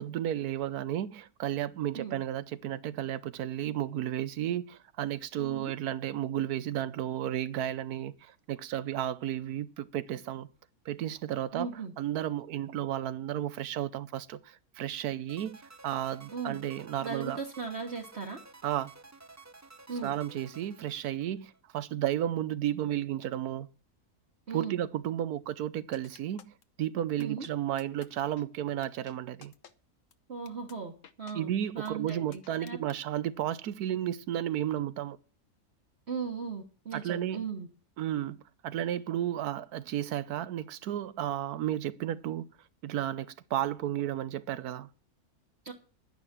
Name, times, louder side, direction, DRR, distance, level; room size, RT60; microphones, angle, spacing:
voice 1, 0.0-10.5 10.9-11.7 12.0-17.4 18.6-18.9 20.0-23.7 24.5-29.5 31.3-35.2 36.9-37.4 38.0-38.4 38.6-42.5 42.8-44.9, right 11 dB, 80° right, 1.2 m, -33 dB
voice 2, 5.4-5.7 11.5-11.9 16.3-16.6 17.0-18.4 19.9-20.1 24.5-24.8 27.2-27.5 30.3-30.9 31.2-31.5 31.7-32.9 36.1-37.7 45.6-45.7, right 5 dB, 45° right, 1.6 m, -37 dB
sound 1, 15.3-21.6, right 3 dB, 20° right, 0.4 m, -53 dB
sound 2, 25.9-26.6 27.2-27.5 27.8-28.1 28.4-28.5 28.8-29.1 29.4-29.7 30.1-30.2 30.5-30.7 31.0-31.3 31.9-33.0, left 8 dB, 60° left, 1.2 m, -53 dB
11.0 x 10.0 x 6.0 m
omnidirectional pair, 1.6 m